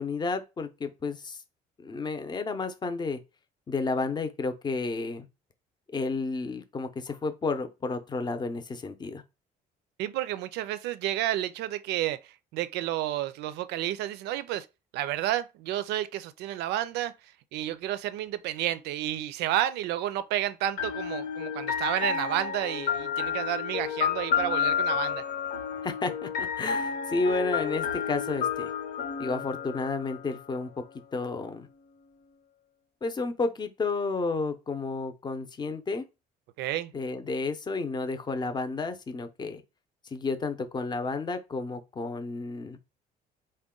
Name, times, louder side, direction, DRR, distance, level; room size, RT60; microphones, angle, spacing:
voice 1, 0.0-1.4 1.8-3.2 3.7-5.3 5.9-9.2 25.8-28.7 29.2-30.7 31.1-31.7 33.0-36.0 36.9-39.6 40.1-42.8, left 3 dB, 25° left, 0.6 m, -31 dB
voice 2, 10.0-14.7 14.9-17.1 17.5-25.2 36.6-36.9, right 13 dB, 85° right, 0.4 m, -31 dB
sound 1, 20.8-30.6, left 7 dB, 85° left, 1.0 m, -30 dB
3.8 x 2.2 x 3.7 m
cardioid pair, 110°, 17 cm